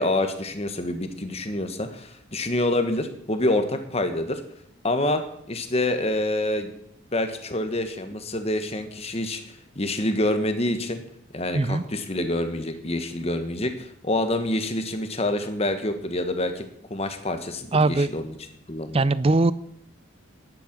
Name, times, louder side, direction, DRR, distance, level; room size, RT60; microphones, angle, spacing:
voice 1, 0.0-4.4 4.8-5.2 5.5-6.7 7.1-9.4 9.7-11.0 11.3-18.3 18.7-19.1, left 1 dB, 30° left, 8 dB, 1.4 m, -27 dB
voice 2, 17.7-18.1 18.9-19.5, right 2 dB, 30° right, 17 dB, 0.5 m, -20 dB
11.0 x 11.0 x 6.1 m, 0.72 s
head